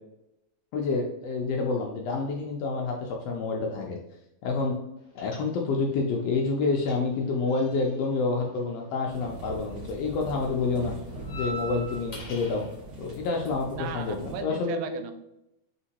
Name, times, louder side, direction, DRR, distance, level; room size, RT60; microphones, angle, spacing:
voice 1, 0.7-4.0 4.4-4.8 5.1-10.9 11.3-12.7 13.0-15.0, left 4 dB, 80° left, 0 dB, 1.5 m, -28 dB
sound 1, 5.2-5.9 6.2-9.6 9.8-12.7, right 1 dB, 60° left, 1.4 m, -43 dB
sound 2, 9.1-14.4, right 2 dB, 40° right, 1.0 m, -42 dB
voice 2, 13.7-15.1, right 7 dB, 90° right, 8 dB, 2.0 m, -36 dB
4.2 x 3.8 x 2.8 m, 0.86 s
omnidirectional pair, 3.3 m